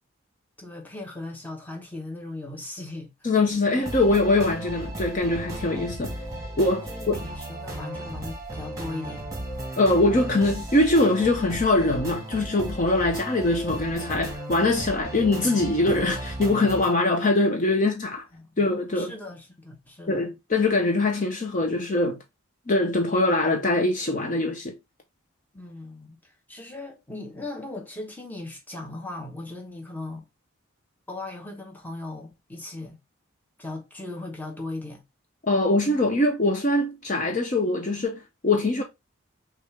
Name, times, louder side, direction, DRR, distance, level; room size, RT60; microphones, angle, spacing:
voice 1, 0.6-3.1 6.9-9.2 18.3-18.5 18.9-20.3 25.5-30.3 31.1-33.0 33.6-35.0, left 2 dB, 10° left, 1.0 m, -38 dB
voice 2, 3.2-6.1 6.6-7.2 9.8-18.2 18.6-19.1 20.1-22.2 22.7-24.7 35.5-38.8, left 2 dB, 35° left, 0.7 m, -23 dB
sound 1, 3.8-16.9, right 1 dB, 15° right, 1.3 m, -35 dB
6.3 x 2.4 x 3.2 m
head